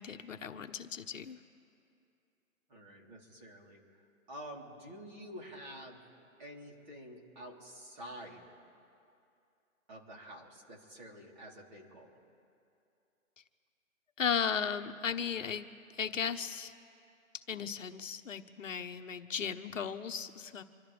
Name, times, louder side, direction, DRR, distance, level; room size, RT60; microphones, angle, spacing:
voice 1, 0.0-1.4 14.2-15.7 16.0-16.7 17.5-20.6, left 7 dB, 70° left, 7 dB, 1.1 m, -36 dB
voice 2, 2.7-3.8 4.3-6.0 6.4-8.6 9.9-12.2, equal, 35° right, -2 dB, 3.7 m, -49 dB
27.0 x 13.0 x 3.5 m, 2.6 s
hypercardioid pair, 160°, 40 cm